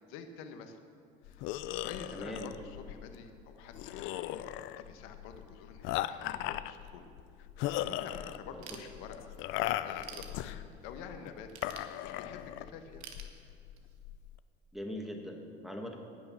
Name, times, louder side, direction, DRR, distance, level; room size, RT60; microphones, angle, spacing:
voice 1, 0.1-0.8 1.2-1.5 1.8-4.5 4.8-7.1 7.8-11.5 12.0-13.0, left 6 dB, 85° left, 7 dB, 1.3 m, -48 dB
sound 1, 1.2-14.4, left 13 dB, 70° left, 0.5 m, -38 dB
voice 2, 2.1-2.5 8.5-8.6 14.7-16.0, equal, ahead, 2 dB, 1.8 m, -41 dB
Ratchet pawl / Tools, 8.6-9.4 9.8-10.9 11.5-12.5 13.0-14.0, right 8 dB, 85° right, 1.4 m, -49 dB
19.0 x 6.6 x 6.1 m, 2.4 s
cardioid pair, 120°, 21 cm